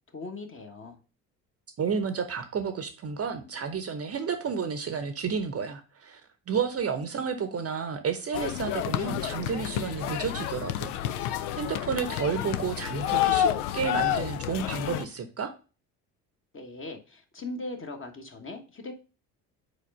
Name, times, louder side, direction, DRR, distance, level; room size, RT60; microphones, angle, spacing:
voice 1, 0.1-1.0 16.5-18.9, left 2 dB, 25° left, 4 dB, 1.3 m, -39 dB
voice 2, 1.8-6.2 6.5-15.5, right 6 dB, 30° right, 8 dB, 0.9 m, -31 dB
sound 1, 8.3-15.1, left 11 dB, 70° left, 0.6 m, -29 dB
5.0 x 4.6 x 5.4 m, 0.34 s
figure-of-eight pair, 50°, 47 cm